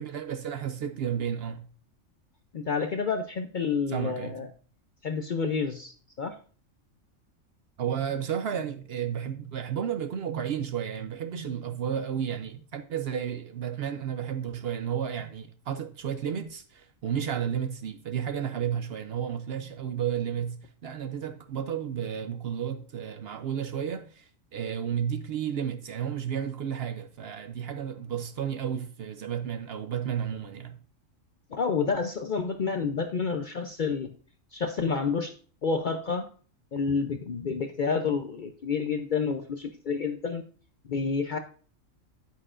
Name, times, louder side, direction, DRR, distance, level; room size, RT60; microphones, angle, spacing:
voice 1, 0.0-1.6 3.9-4.4 7.8-30.8, right 8 dB, 60° right, 0.7 m, -32 dB
voice 2, 2.5-4.5 5.0-6.4 31.5-34.1 34.5-35.3 35.6-36.3 36.7-40.4 40.9-41.4, left 5 dB, 55° left, 0.5 m, -29 dB
9.2 x 8.8 x 2.5 m
omnidirectional pair, 1.4 m